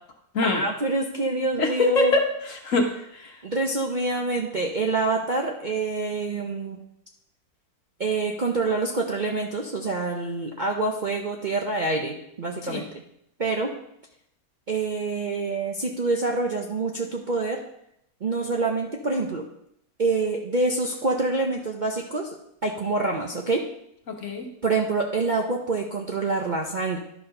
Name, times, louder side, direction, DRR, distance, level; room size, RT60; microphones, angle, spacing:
voice 1, 0.4-2.1 3.4-6.8 8.0-13.0 13.4-13.7 14.7-17.6 18.2-19.4 20.0-22.4 22.6-23.7 24.6-27.0, right 3 dB, 40° right, 0 dB, 0.7 m, -26 dB
voice 2, 1.6-3.4 12.6-12.8 24.1-24.5, left 3 dB, 55° left, 2 dB, 1.6 m, -24 dB
11.5 x 4.2 x 5.5 m, 0.75 s
omnidirectional pair, 1.7 m